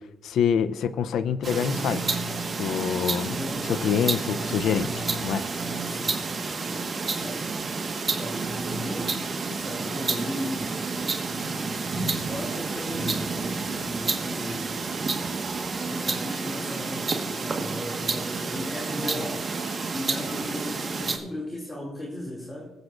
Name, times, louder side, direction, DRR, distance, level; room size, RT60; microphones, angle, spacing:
voice 1, 0.2-2.2 2.6-3.4 3.7-5.4, left 7 dB, 75° left, 15 dB, 0.5 m, -26 dB
sound 1, 1.4-21.2, right 4 dB, 35° right, 1.3 m, -30 dB
voice 2, 3.2-3.7 5.8-6.2 6.6-7.5 8.1-9.2 9.5-10.8 12.1-14.8 15.7-19.5 19.9-22.7, left 1 dB, 15° left, -2 dB, 2.3 m, -36 dB
22.5 x 7.7 x 2.4 m, 1.1 s
cardioid pair, 90°, 0 cm